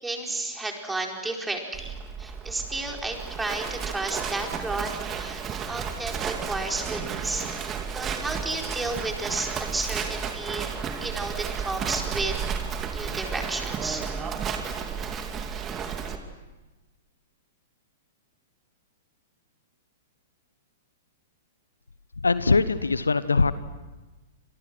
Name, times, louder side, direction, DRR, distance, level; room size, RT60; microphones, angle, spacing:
voice 1, 0.0-5.4 5.7-7.5 7.9-10.7 11.0-12.4 12.8-14.0, right 2 dB, 10° right, 1 dB, 4.6 m, -32 dB
Livestock farm animals working animals, 1.7-16.2, right 6 dB, 25° right, 2.8 m, -33 dB
voice 2, 22.2-23.5, left 4 dB, 80° left, 14 dB, 1.1 m, -21 dB
30.0 x 27.0 x 6.2 m, 1.2 s
figure-of-eight pair, 105°, 0 cm